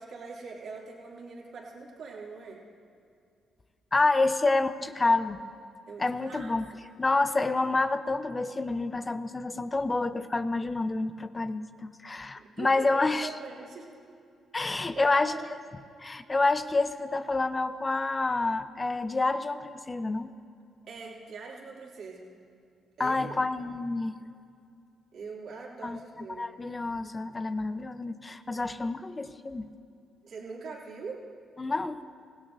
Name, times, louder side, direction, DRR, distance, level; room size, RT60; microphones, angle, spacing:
voice 1, 0.0-2.6 5.9-6.5 12.3-13.9 14.5-15.5 20.8-22.3 23.0-23.4 25.1-26.5 30.2-31.2, right 4 dB, 65° right, -3 dB, 2.9 m, -42 dB
voice 2, 3.9-5.4 6.0-6.7 7.0-13.3 14.5-15.3 16.0-20.3 23.0-24.1 25.8-26.0 26.4-29.7 31.6-32.0, left 3 dB, 30° left, 10 dB, 0.8 m, -28 dB
26.0 x 17.0 x 2.7 m, 2.4 s
hypercardioid pair, 45°, 0 cm